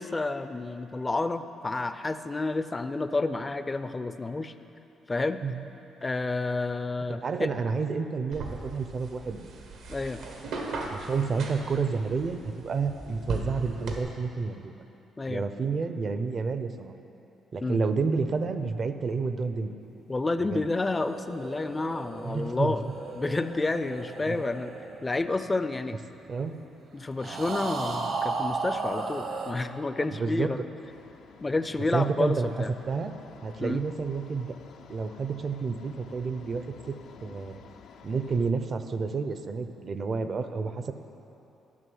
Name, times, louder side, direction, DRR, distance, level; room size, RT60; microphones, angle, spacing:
voice 1, 0.0-4.5 5.1-5.4 6.0-7.5 9.9-10.2 15.2-15.4 17.6-17.8 20.1-22.9 23.2-24.7 25.0-26.0 26.9-30.6 31.4-32.7 33.6-33.8, left 3 dB, 20° left, 11 dB, 0.5 m, -30 dB
voice 2, 7.1-9.4 10.9-14.7 15.3-16.9 17.5-19.7 20.4-20.7 22.2-22.8 24.2-24.4 26.3-26.5 30.1-30.5 31.9-32.5 32.9-33.1 33.4-34.6 34.9-36.6 37.2-37.6 38.0-40.9, right 4 dB, 45° right, 9 dB, 0.6 m, -30 dB
sound 1, 8.3-14.0, right 3 dB, 80° right, 1.3 m, -38 dB
sound 2, 20.5-26.1 27.2-29.5, right 4 dB, 60° right, 1.1 m, -35 dB
sound 3, 30.8-38.5, left 7 dB, 75° left, 0.6 m, -51 dB
11.0 x 6.1 x 7.8 m, 3.0 s
cardioid pair, 90°, 0 cm